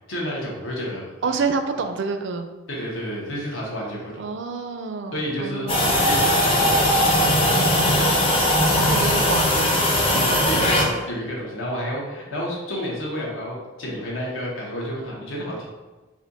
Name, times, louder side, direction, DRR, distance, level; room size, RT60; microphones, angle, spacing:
voice 1, 0.1-1.3 2.7-4.2 5.1-8.0 10.1-15.6, equal, 75° left, -3 dB, 1.1 m, -30 dB
voice 2, 1.2-2.5 4.2-6.1 8.8-9.8 10.1-10.5, right 4 dB, 60° right, 7 dB, 0.4 m, -28 dB
sound 1, 5.7-10.8, left 1 dB, 25° left, 0.6 m, -19 dB
4.2 x 2.4 x 4.0 m, 1.2 s
head